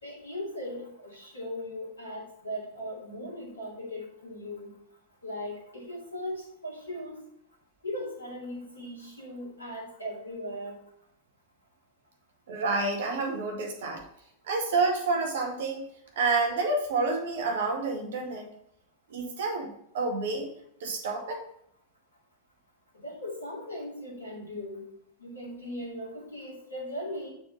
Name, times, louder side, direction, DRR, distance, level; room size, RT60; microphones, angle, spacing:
voice 1, 0.0-4.7 5.2-7.2 7.8-10.8 22.9-24.8 25.2-27.3, left 1 dB, 75° left, -4 dB, 2.5 m, -38 dB
voice 2, 12.5-14.0 14.5-15.8 16.2-18.5 19.1-20.5 20.8-21.5, right 3 dB, 60° right, 1 dB, 2.0 m, -29 dB
6.9 x 5.9 x 4.0 m, 0.70 s
figure-of-eight pair, 90°, 0 cm